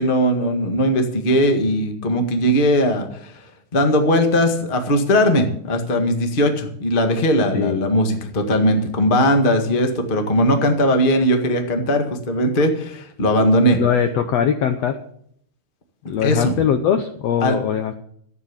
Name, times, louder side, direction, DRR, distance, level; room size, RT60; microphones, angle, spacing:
voice 1, 0.0-3.3 3.7-13.8 16.0-16.5 17.4-17.5, equal, 40° left, 5 dB, 0.7 m, -19 dB
voice 2, 7.5-7.9 13.4-15.0 16.0-18.0, left 8 dB, 85° left, 8 dB, 1.4 m, -21 dB
14.0 x 9.1 x 7.2 m, 0.67 s
omnidirectional pair, 4.1 m